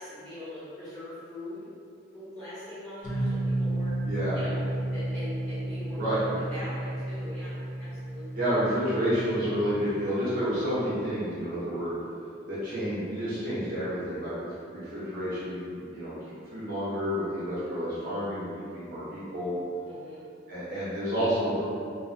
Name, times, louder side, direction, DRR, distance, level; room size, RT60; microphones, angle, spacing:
voice 1, 0.0-1.7 2.1-4.0 4.3-4.6 4.9-6.2 6.5-8.4 19.8-20.2, left 1 dB, 5° left, -17 dB, 1.4 m, -42 dB
sound 1, 3.0-9.9, right 1 dB, 40° left, 0.5 m, -32 dB
voice 2, 4.0-4.4 6.0-6.4 8.4-11.9 12.5-19.5 20.5-21.6, equal, 45° right, -11 dB, 0.7 m, -30 dB
2.9 x 2.0 x 2.5 m, 2.5 s
head